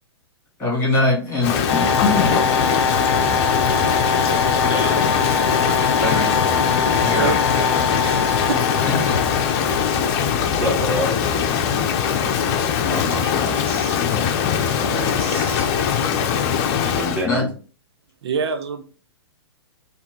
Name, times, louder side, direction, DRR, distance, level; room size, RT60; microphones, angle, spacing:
voice 1, 0.6-2.4 6.0-6.4 7.0-7.3 8.8-9.2 17.2-17.5, left 2 dB, 15° left, 2.2 m, -22 dB
Rain, 1.4-17.3, left 7 dB, 40° left, 0.7 m, -21 dB
sound 1, 1.7-10.6, left 4 dB, 85° left, 0.7 m, -23 dB
voice 2, 4.6-5.0 10.6-11.1 12.9-13.6 16.7-17.5, equal, 10° right, 1.8 m, -27 dB
voice 3, 8.0-8.6 13.4-14.0 14.8-15.9 18.2-18.8, right 5 dB, 70° right, 0.7 m, -28 dB
4.2 x 2.9 x 4.0 m
hypercardioid pair, 125°, 14 cm